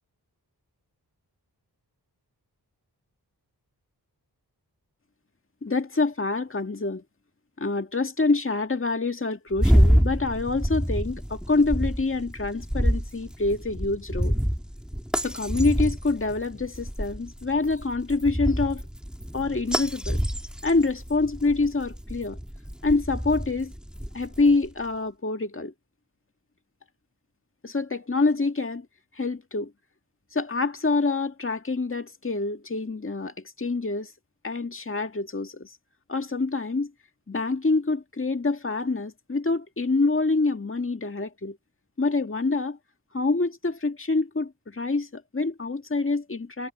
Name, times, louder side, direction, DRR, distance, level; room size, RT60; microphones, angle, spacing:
voice 1, 5.6-7.0 7.6-14.4 15.2-18.8 19.3-20.2 20.6-22.4 22.8-23.7 24.1-25.7 27.6-28.9 29.2-29.7 30.3-34.1 34.4-35.7 36.1-36.9 37.3-41.6 42.0-42.8 43.1-46.7, left 3 dB, 30° left, 1.9 m, -26 dB
sound 1, 9.5-24.7, equal, ahead, 2.6 m, -27 dB
wide cardioid pair, 55°, 41 cm